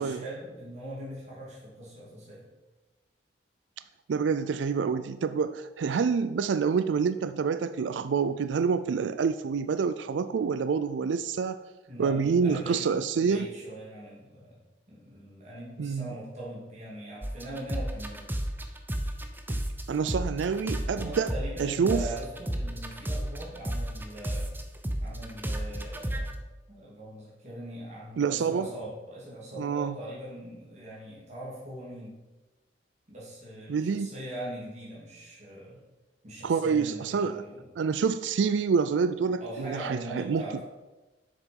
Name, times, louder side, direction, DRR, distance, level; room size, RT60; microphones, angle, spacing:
voice 1, 0.0-2.5 11.9-12.9 13.2-14.5 14.9-18.2 20.9-24.5 25.0-26.4 26.7-32.2 33.1-35.8 36.2-37.7 39.4-40.6, right 1 dB, 40° right, -7 dB, 2.7 m, -41 dB
voice 2, 4.1-11.6 12.0-13.5 15.8-16.2 19.5-19.6 19.9-21.3 21.6-22.0 28.2-28.7 29.6-30.0 33.7-34.1 36.4-37.4 37.8-40.4, right 5 dB, 85° right, 12 dB, 0.4 m, -27 dB
sound 1, 17.2-19.8 20.1-26.3, right 1 dB, 10° right, 0.7 m, -32 dB
7.4 x 6.7 x 5.3 m, 1.1 s
head